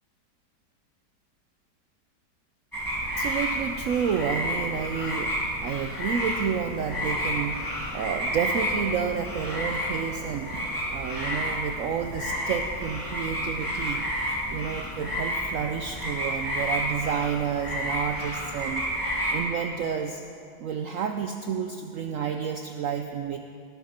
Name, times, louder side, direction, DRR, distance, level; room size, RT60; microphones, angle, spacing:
sound 1, 2.7-19.3, equal, 10° left, 2.6 m, -30 dB
voice 1, 3.2-14.0 14.5-18.9 19.3-20.2 20.6-23.4, right 7 dB, 65° right, 6 dB, 0.8 m, -30 dB
18.0 x 11.5 x 4.3 m, 2.6 s
omnidirectional pair, 1.8 m